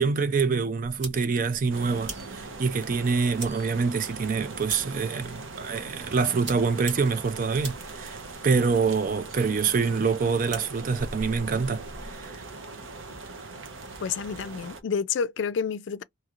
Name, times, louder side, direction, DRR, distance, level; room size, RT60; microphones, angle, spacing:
voice 1, 0.0-8.2 8.4-11.8 12.1-12.4, right 5 dB, 45° right, 0.4 m, -26 dB
sound 1, 0.8-12.2, right 2 dB, 65° right, 1.6 m, -44 dB
sound 2, 1.7-14.8, right 3 dB, 85° right, 0.8 m, -41 dB
voice 2, 14.0-16.0, left 6 dB, 70° left, 0.4 m, -29 dB
2.7 x 2.5 x 2.9 m
head